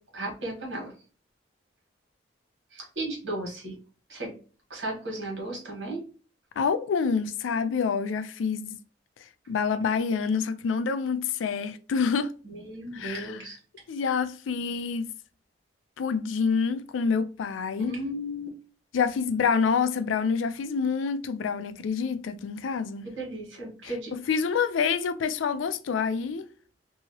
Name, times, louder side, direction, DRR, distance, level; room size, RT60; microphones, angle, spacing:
voice 1, 0.1-0.9 2.7-3.7 4.1-4.3 4.7-6.0 12.4-13.6 17.9-18.5 23.0-24.1, right 1 dB, 75° right, 1.4 m, -35 dB
voice 2, 6.6-8.8 9.5-12.3 12.9-13.4 13.9-15.1 16.0-17.9 18.9-23.1 24.1-26.5, left 5 dB, 85° left, 0.4 m, -27 dB
2.9 x 2.7 x 2.8 m
head